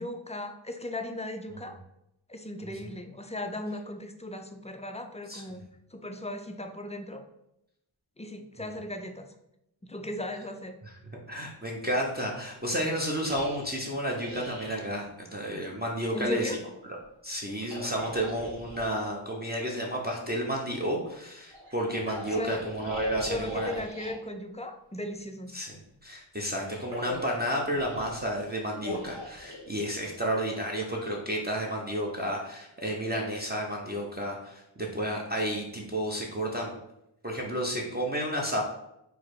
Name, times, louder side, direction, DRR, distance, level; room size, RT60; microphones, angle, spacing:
voice 1, 0.0-1.8 2.3-5.6 5.9-7.2 8.2-9.3 9.8-10.8 16.1-16.6 22.3-22.7 23.3-25.5, left 1 dB, 15° left, 5 dB, 0.3 m, -37 dB
voice 2, 11.3-16.5 17.2-23.7 25.5-25.7 26.0-36.7 37.2-38.6, equal, 20° right, -2 dB, 0.6 m, -31 dB
sound 1, 13.2-14.8 17.5-18.9 21.5-24.2 26.4-30.3, left 1 dB, 60° right, 1.2 m, -41 dB
4.7 x 2.0 x 4.5 m, 0.84 s
wide cardioid pair, 65°, 49 cm